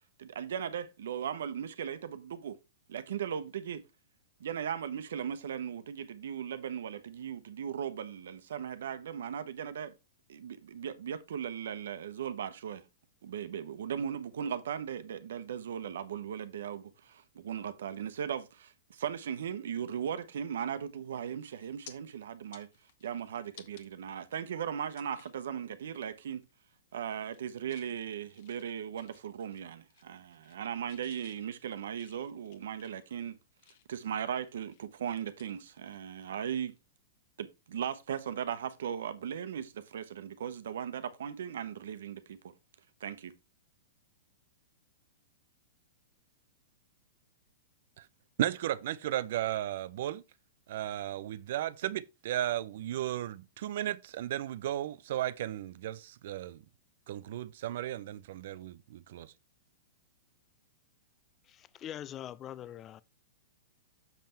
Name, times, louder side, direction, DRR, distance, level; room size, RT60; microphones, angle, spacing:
voice 1, 0.2-2.6 2.9-3.8 4.4-9.9 10.3-12.8 13.2-22.7 23.0-26.4 26.9-33.4 33.9-36.7 37.4-42.5 43.0-43.3, right 8 dB, 75° right, 1.0 m, -38 dB
sound 1, 20.8-21.1 21.4-21.9 22.4-23.9 24.3-24.4 24.9-25.4 25.8-26.0 26.3-26.8 27.1-27.9 28.3-29.6 29.9-30.6 30.9-34.0 34.5-36.3 36.6-36.8 38.7-38.8, left 10 dB, 55° left, 1.4 m, -58 dB
voice 2, 48.4-50.2 50.7-56.6 57.1-59.3, right 12 dB, 60° right, 0.6 m, -35 dB
voice 3, 61.5-63.0, left 11 dB, 25° left, 0.4 m, -43 dB
7.2 x 5.6 x 4.4 m
hypercardioid pair, 150°, 0 cm